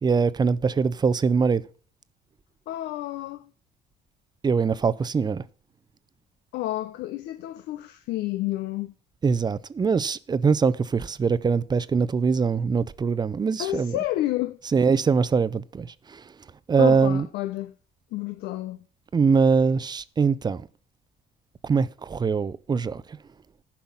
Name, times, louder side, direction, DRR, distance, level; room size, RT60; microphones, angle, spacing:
voice 1, 0.0-1.6 4.4-5.4 9.2-14.0 14.7-16.4 16.7-17.3 19.1-20.7 21.6-23.2, right 5 dB, 25° right, 0.5 m, -23 dB
voice 2, 2.7-3.5 6.5-8.9 13.6-14.6 16.8-17.7 18.1-18.8, left 15 dB, 85° left, 0.7 m, -30 dB
10.5 x 5.7 x 7.1 m
cardioid pair, 110°, 17 cm